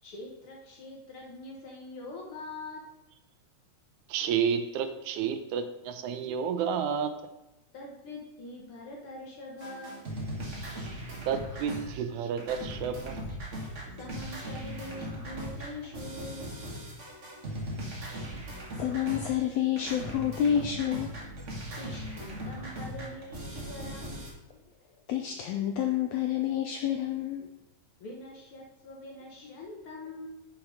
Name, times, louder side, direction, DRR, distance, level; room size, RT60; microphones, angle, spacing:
voice 1, 0.0-2.8 7.7-10.1 14.0-16.5 21.8-24.3 28.0-30.3, left 2 dB, 55° left, -1 dB, 1.6 m, -43 dB
voice 2, 4.1-7.1 11.3-13.2, right 7 dB, 80° right, 9 dB, 2.0 m, -30 dB
sound 1, 9.6-12.1 12.4-19.5 19.8-24.3, right 1 dB, 35° right, 1.2 m, -39 dB
voice 3, 18.7-21.2 25.1-27.5, left 10 dB, 85° left, 4 dB, 1.5 m, -29 dB
6.4 x 6.0 x 4.9 m, 0.96 s
omnidirectional pair, 3.6 m